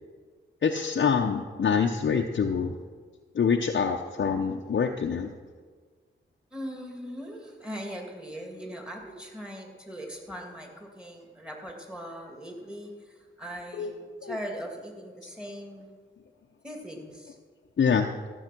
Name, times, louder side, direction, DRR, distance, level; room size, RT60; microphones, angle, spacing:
voice 1, 0.6-2.7 3.3-5.3 13.8-13.9 14.2-14.4 17.8-18.1, left 6 dB, 60° left, 2 dB, 0.7 m, -25 dB
voice 2, 6.5-15.9 16.6-17.4, equal, 5° right, 1 dB, 2.6 m, -40 dB
15.0 x 7.3 x 6.0 m, 1.5 s
cardioid pair, 70°, 21 cm